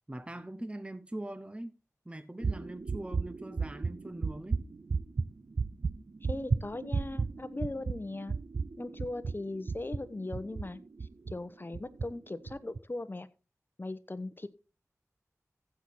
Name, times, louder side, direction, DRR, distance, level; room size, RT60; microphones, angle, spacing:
voice 1, 0.1-1.7 2.0-4.6, right 1 dB, 20° right, 0.8 m, -42 dB
sound 1, 2.4-11.4 11.7-12.1 12.5-12.8, right 4 dB, 70° right, 0.5 m, -34 dB
voice 2, 6.2-8.3 8.8-13.3 13.8-14.5, left 2 dB, 35° left, 1.1 m, -39 dB
15.0 x 6.3 x 4.3 m
wide cardioid pair, 55°, 6 cm